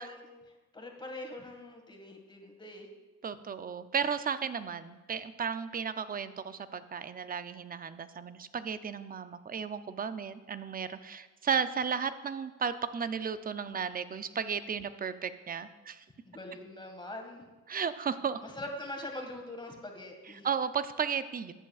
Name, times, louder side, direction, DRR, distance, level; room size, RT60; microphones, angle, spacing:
voice 1, 0.0-2.9 16.3-17.4 18.4-20.5, left 1 dB, 15° left, 3 dB, 1.8 m, -43 dB
voice 2, 3.2-16.0 17.7-18.4 20.3-21.5, right 6 dB, 30° right, 12 dB, 0.5 m, -34 dB
13.5 x 8.3 x 2.4 m, 1.2 s
cardioid pair, 90°, 30 cm